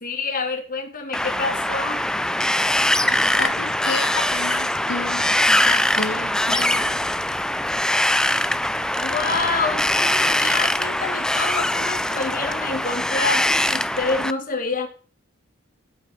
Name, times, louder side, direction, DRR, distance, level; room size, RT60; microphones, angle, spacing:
voice 1, 0.0-2.0 9.0-14.9, left 3 dB, 45° left, 4 dB, 2.5 m, -27 dB
Wind, 1.1-14.3, left 1 dB, 5° left, 0.5 m, -22 dB
voice 2, 3.0-7.1, left 4 dB, 80° left, 4 dB, 1.5 m, -31 dB
13.5 x 8.3 x 4.6 m, 0.39 s
head